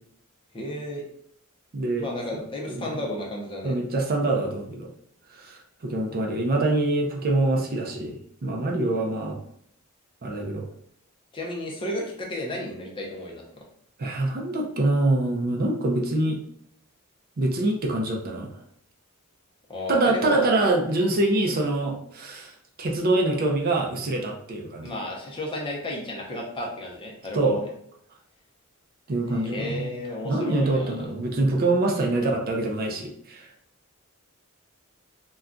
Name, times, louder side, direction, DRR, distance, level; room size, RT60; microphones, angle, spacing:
voice 1, 0.5-1.0 2.0-3.8 11.3-13.6 19.7-20.5 21.5-21.6 24.8-27.7 29.3-31.0, left 1 dB, 25° left, -1 dB, 0.6 m, -33 dB
voice 2, 1.7-2.1 2.3-2.4 2.8-2.9 3.6-4.9 5.4-9.4 10.2-10.6 14.0-16.4 17.4-18.5 19.9-22.5 22.8-24.9 27.3-27.6 29.1-29.9 30.2-33.5, right 2 dB, 45° right, 1 dB, 0.4 m, -25 dB
2.3 x 2.2 x 3.7 m, 0.68 s
head